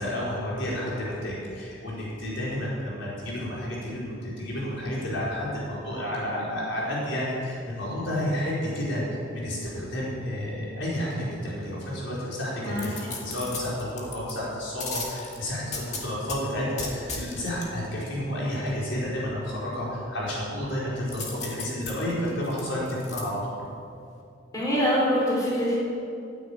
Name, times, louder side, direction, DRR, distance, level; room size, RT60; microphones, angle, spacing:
voice 1, 0.0-23.4, left 1 dB, 65° left, -6 dB, 4.8 m, -31 dB
voice 2, 12.6-13.0 24.5-25.8, equal, 15° left, -7 dB, 4.9 m, -24 dB
sound 1, 12.8-14.3 14.8-16.4 16.8-17.7 21.1-23.2 23.7-23.8, left 4 dB, 35° left, 2.2 m, -36 dB
14.0 x 9.7 x 8.8 m, 2.5 s
head